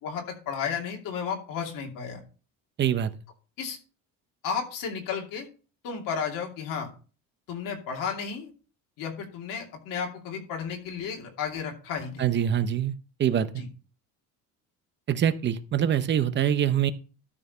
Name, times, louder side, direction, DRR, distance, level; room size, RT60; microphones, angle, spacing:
voice 1, 0.0-2.2 3.6-3.8 4.4-5.5 5.8-6.9 7.5-8.5 9.0-12.3 13.6-13.7, left 6 dB, 75° left, 1 dB, 2.7 m, -33 dB
voice 2, 2.8-3.1 12.2-12.9 13.2-13.6 15.1-16.9, right 9 dB, 35° right, 12 dB, 0.7 m, -24 dB
12.5 x 4.6 x 5.4 m, 0.36 s
cardioid pair, 160°, 34 cm